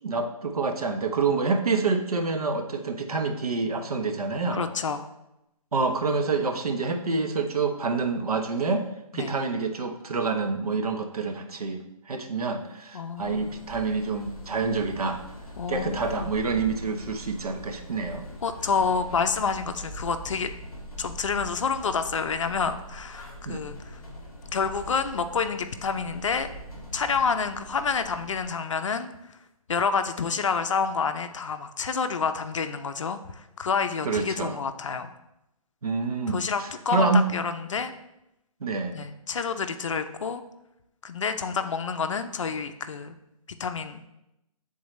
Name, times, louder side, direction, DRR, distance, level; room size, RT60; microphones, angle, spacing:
voice 1, 0.0-4.6 5.7-8.9 9.1-15.2 15.7-18.2 23.4-23.6 34.0-34.6 35.8-37.3 38.6-39.0, right 4 dB, 85° right, 4 dB, 1.0 m, -27 dB
voice 2, 4.5-5.0 9.1-9.3 12.9-13.5 15.6-16.3 18.4-20.5 21.0-24.0 24.5-26.5 26.9-29.1 29.7-35.1 36.3-37.9 38.9-40.4 41.0-43.2 43.6-44.0, left 5 dB, 55° left, 9 dB, 0.5 m, -28 dB
sound 1, 13.2-28.5, equal, 5° left, 0.4 m, -42 dB
8.7 x 3.9 x 3.1 m, 0.88 s
hypercardioid pair, 170°, 19 cm